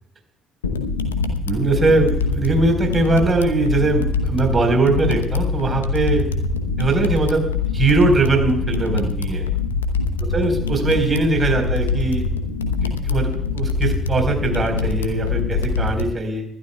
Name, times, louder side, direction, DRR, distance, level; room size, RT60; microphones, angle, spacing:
sound 1, 0.6-16.1, left 4 dB, 85° left, 0.9 m, -23 dB
voice 1, 1.5-6.2 6.8-7.5 7.7-9.5 10.3-12.2 13.0-16.4, right 3 dB, 30° right, 4 dB, 4.4 m, -20 dB
25.5 x 12.5 x 2.3 m, 0.77 s
figure-of-eight pair, 50°, 0 cm